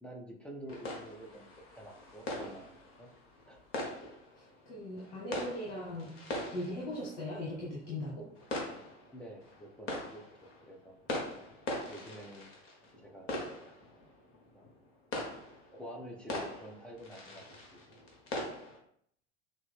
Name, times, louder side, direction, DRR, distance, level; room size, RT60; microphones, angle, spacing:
voice 1, 0.0-3.1 3.5-3.6 9.1-10.2 10.6-11.0 11.9-12.5 13.0-13.3 14.5-14.7 15.7-17.4 17.7-17.8, right 1 dB, 5° left, 1 dB, 0.8 m, -48 dB
sound 1, 0.7-18.8, left 1 dB, 40° left, 1.4 m, -42 dB
voice 2, 4.4-6.1 6.5-8.3, left 1 dB, 60° left, -4 dB, 1.3 m, -39 dB
5.9 x 2.0 x 3.5 m, 0.65 s
figure-of-eight pair, 80°, 35 cm